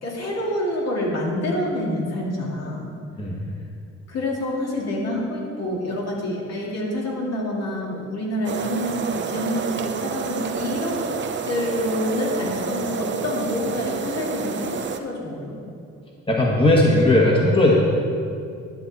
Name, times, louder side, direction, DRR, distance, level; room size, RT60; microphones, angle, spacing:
voice 1, 0.0-2.9 4.1-15.7, left 1 dB, 60° left, -3 dB, 2.3 m, -27 dB
sound 1, 8.4-15.0, right 6 dB, 40° right, 0.6 m, -29 dB
voice 2, 16.3-17.8, left 1 dB, 15° left, -3 dB, 1.6 m, -17 dB
11.0 x 7.0 x 4.1 m, 2.4 s
cardioid pair, 90°, 30 cm